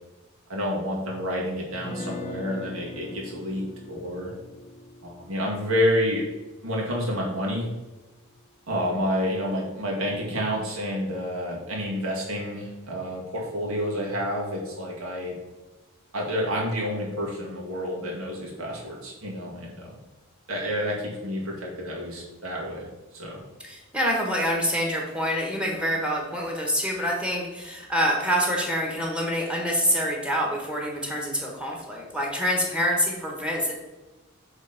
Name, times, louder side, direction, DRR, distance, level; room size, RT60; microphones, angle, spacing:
voice 1, 0.5-4.3 5.0-6.2 6.6-7.7 8.7-15.4 16.1-19.9 20.5-22.8 23.1-23.4, equal, 85° right, -3 dB, 2.1 m, -29 dB
Guitar, 1.7-7.8, left 2 dB, 30° left, 0.5 m, -42 dB
voice 2, 23.6-33.7, equal, 5° right, -1 dB, 1.3 m, -26 dB
6.6 x 3.6 x 5.2 m, 1.1 s
head